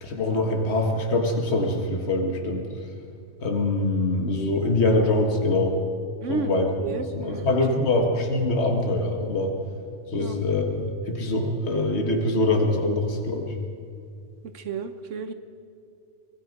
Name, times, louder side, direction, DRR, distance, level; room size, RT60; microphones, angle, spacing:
voice 1, 0.0-2.7 3.4-5.8 6.3-6.7 7.1-9.5 10.1-13.5, left 2 dB, 60° left, 2 dB, 2.0 m, -24 dB
voice 2, 6.2-7.5 8.0-8.1 10.2-10.4 14.5-15.3, right 5 dB, 80° right, 9 dB, 1.3 m, -32 dB
25.0 x 19.5 x 5.4 m, 2.4 s
omnidirectional pair, 1.2 m